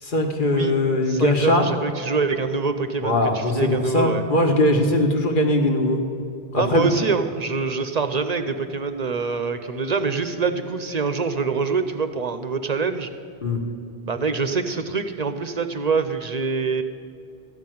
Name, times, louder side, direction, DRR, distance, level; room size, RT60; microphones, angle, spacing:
voice 1, 0.0-1.7 3.0-6.0 6.5-6.9 13.4-13.6, left 1 dB, 55° left, 3 dB, 1.4 m, -20 dB
voice 2, 1.1-4.2 6.6-13.1 14.1-16.8, right 4 dB, 50° right, 9 dB, 0.6 m, -25 dB
13.5 x 5.7 x 9.1 m, 2.6 s
omnidirectional pair, 1.0 m